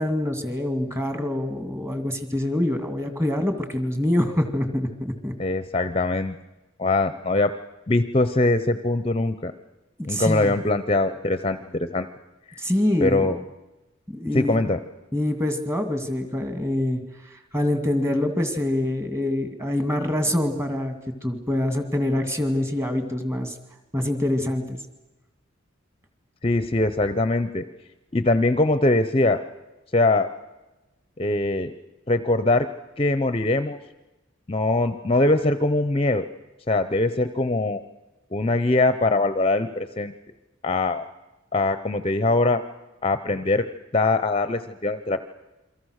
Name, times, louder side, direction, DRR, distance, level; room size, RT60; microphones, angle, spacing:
voice 1, 0.0-5.3 10.0-10.5 12.6-13.3 14.1-14.6 15.1-17.0 17.5-20.9 21.2-23.5 23.9-24.8, left 1 dB, 15° right, 7 dB, 2.4 m, -25 dB
voice 2, 5.4-6.4 6.8-7.5 7.9-9.5 10.0-12.1 12.5-12.6 13.0-13.4 14.3-14.8 26.4-27.6 28.1-29.4 29.9-30.3 31.2-31.7 32.1-32.7 33.0-33.8 34.5-36.3 36.7-37.8 38.3-40.1 40.6-41.0 41.5-42.6 43.0-43.7 43.9-45.2, left 2 dB, 30° left, 11 dB, 0.7 m, -22 dB
28.5 x 23.5 x 6.5 m, 1.1 s
head